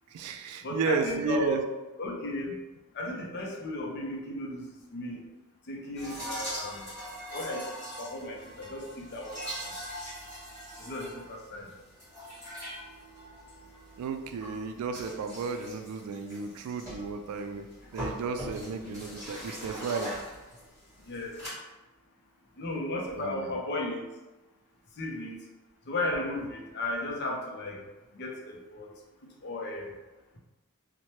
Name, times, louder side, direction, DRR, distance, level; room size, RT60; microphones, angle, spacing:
voice 1, 0.1-1.6 14.0-17.7 17.9-20.1 23.2-23.6, right 4 dB, 85° right, 11 dB, 0.3 m, -33 dB
voice 2, 0.6-1.7 2.0-2.5 2.9-4.6 4.9-5.2 5.7-7.7 8.0-9.7 10.8-11.7 17.5-17.6 18.4-18.8 21.1-21.4 22.6-24.0 25.0-25.4 25.9-27.8 28.1-28.9 29.4-29.9, left 1 dB, 50° left, 0 dB, 0.5 m, -35 dB
sound 1, 5.9-21.5, equal, 10° left, 1.5 m, -42 dB
2.8 x 2.1 x 3.0 m, 1.1 s
head